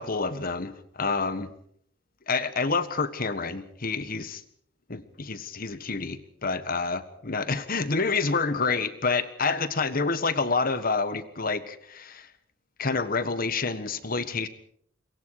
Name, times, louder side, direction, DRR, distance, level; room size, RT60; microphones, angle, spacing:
voice 1, 0.0-1.5 2.3-4.4 4.9-12.3 12.8-14.5, left 4 dB, 50° left, 12 dB, 1.5 m, -28 dB
26.0 x 23.5 x 4.9 m, 0.66 s
head